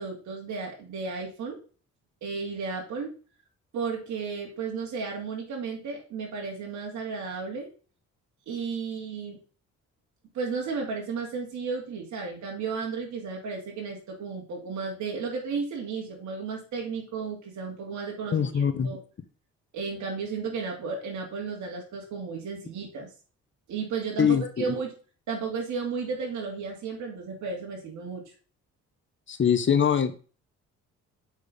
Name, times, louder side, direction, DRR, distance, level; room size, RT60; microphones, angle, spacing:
voice 1, 0.0-1.6 2.2-3.1 3.7-7.7 8.5-9.4 10.3-19.0 19.7-23.1 23.7-24.9 25.3-28.2, right 5 dB, 70° right, -1 dB, 2.7 m, -33 dB
voice 2, 18.3-18.9 24.2-24.6 29.3-30.1, left 7 dB, 40° left, 9 dB, 1.1 m, -23 dB
8.3 x 4.9 x 5.1 m, 0.38 s
cardioid pair, 90°, 30 cm